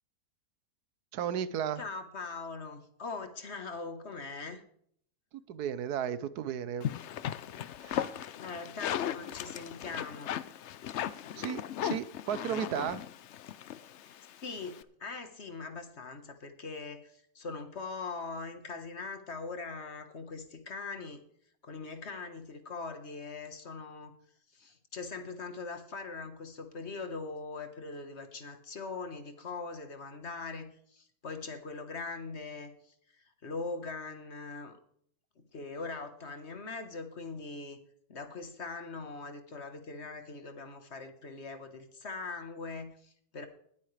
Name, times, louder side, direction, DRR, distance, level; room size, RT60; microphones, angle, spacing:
voice 1, 1.1-1.8 5.3-6.9 7.8-8.2 11.3-13.0, right 9 dB, 85° right, 15 dB, 1.3 m, -34 dB
voice 2, 1.8-4.6 8.3-10.3 14.0-14.1 14.4-21.2 21.6-24.1 24.5-34.8 35.4-37.8 38.1-43.5, left 4 dB, 45° left, 8 dB, 1.6 m, -41 dB
sound 1, 6.8-14.8, left 10 dB, 60° left, 0.8 m, -37 dB
20.0 x 8.8 x 3.3 m, 0.64 s
omnidirectional pair, 1.6 m